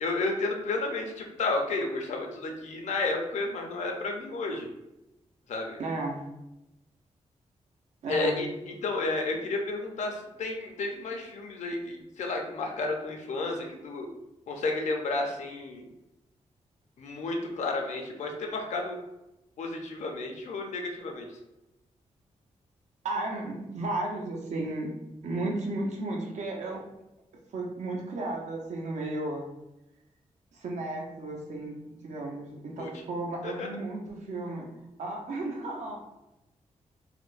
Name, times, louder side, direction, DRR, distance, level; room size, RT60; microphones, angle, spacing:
voice 1, 0.0-4.7 5.5-5.8 8.1-14.1 14.5-15.9 17.0-19.0 19.6-21.3 32.8-32.9 33.4-33.7, left 3 dB, 75° left, 2 dB, 0.6 m, -32 dB
voice 2, 5.8-6.3 8.0-8.5 23.0-27.0 27.5-29.5 30.5-36.0, right 2 dB, 75° right, 0 dB, 0.7 m, -34 dB
4.2 x 2.1 x 2.5 m, 0.92 s
wide cardioid pair, 170°, 12 cm